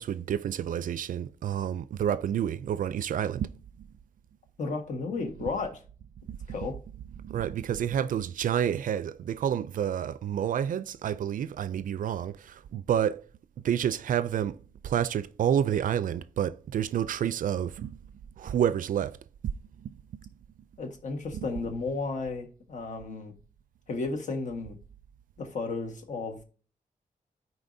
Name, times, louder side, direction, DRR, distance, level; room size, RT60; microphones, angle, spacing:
voice 1, 0.0-3.5 3.8-3.9 5.4-5.5 6.3-6.4 7.2-13.3 13.6-18.1 18.4-19.2 19.8-20.0 21.3-21.5, right 9 dB, 70° right, 0.4 m, -29 dB
voice 2, 4.6-5.8 6.5-6.7 20.8-23.3 23.9-24.8 25.4-26.4, left 3 dB, 60° left, 1.5 m, -33 dB
13.5 x 4.6 x 2.7 m
wide cardioid pair, 150°, 14 cm